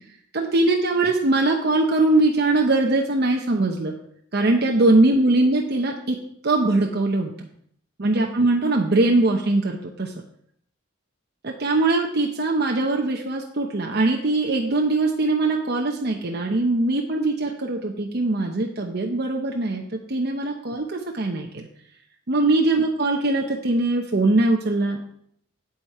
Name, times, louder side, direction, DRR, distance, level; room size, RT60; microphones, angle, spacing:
voice 1, 0.3-3.9 4.3-6.2 6.4-7.5 8.0-10.1 11.4-19.8 20.1-21.6 22.3-25.1, right 2 dB, 55° right, 1 dB, 0.9 m, -21 dB
8.7 x 8.5 x 4.3 m, 0.67 s
head